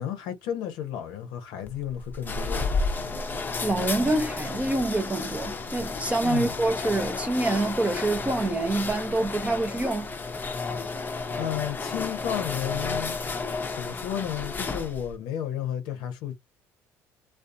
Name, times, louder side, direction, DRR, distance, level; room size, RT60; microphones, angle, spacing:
voice 1, 0.0-2.7 6.2-6.6 11.4-13.2 13.7-16.3, left 10 dB, 65° left, 0.7 m, -32 dB
sound 1, 1.7-15.2, left 4 dB, 25° left, 0.6 m, -32 dB
voice 2, 3.6-10.1, right 2 dB, 15° right, 0.6 m, -26 dB
2.5 x 2.4 x 2.3 m
hypercardioid pair, 70°, 8 cm